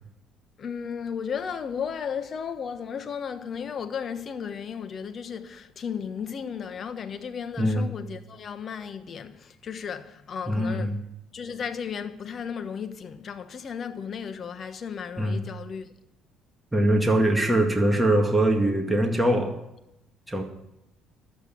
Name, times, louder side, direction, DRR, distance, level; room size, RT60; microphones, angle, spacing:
voice 1, 0.6-11.0 11.3-15.9, left 7 dB, 45° left, 1.2 m, -34 dB
voice 2, 7.6-7.9 10.5-11.0 15.2-15.4 16.7-19.5 20.3-20.4, right 1 dB, 10° right, 2.1 m, -22 dB
12.0 x 8.5 x 8.7 m
supercardioid pair, 90°, 0 cm